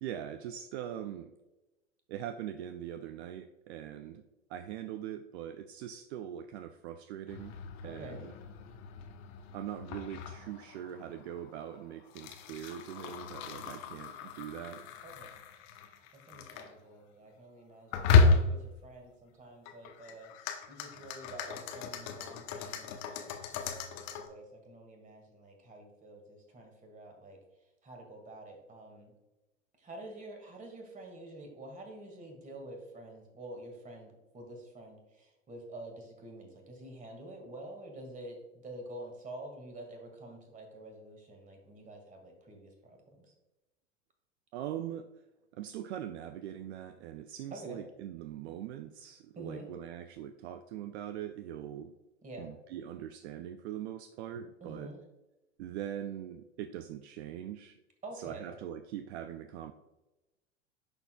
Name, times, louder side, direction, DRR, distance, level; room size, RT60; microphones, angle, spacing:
voice 1, 0.0-1.3 2.1-4.2 4.5-7.6 7.8-8.3 9.5-14.9 44.5-45.1 45.5-52.0 52.4-54.9 55.6-57.8 58.1-59.7, right 10 dB, 60° right, 9 dB, 0.5 m, -42 dB
sound 1, 7.3-16.7 17.9-18.8 19.6-24.3, left 4 dB, 45° left, 0.9 m, -33 dB
voice 2, 7.8-8.2 15.0-15.3 16.1-27.4 27.8-29.1 29.8-43.3 47.5-47.8 49.4-49.7 52.2-52.5 54.6-55.0 58.0-58.5, right 1 dB, 20° right, 3 dB, 1.9 m, -48 dB
10.5 x 4.5 x 2.3 m, 1.0 s
hypercardioid pair, 90°, 37 cm